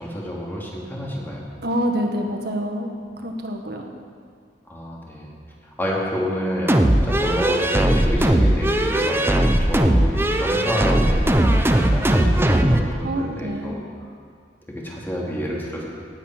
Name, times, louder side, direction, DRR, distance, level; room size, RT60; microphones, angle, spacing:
voice 1, 0.0-1.4 4.7-5.4 5.6-13.8 14.7-15.9, equal, 10° left, -4 dB, 2.7 m, -29 dB
voice 2, 1.6-2.9 3.2-3.9 13.0-13.8, equal, 65° right, 2 dB, 1.8 m, -26 dB
sound 1, 6.7-12.9, right 1 dB, 15° right, 0.8 m, -18 dB
18.5 x 8.9 x 6.1 m, 2.1 s
head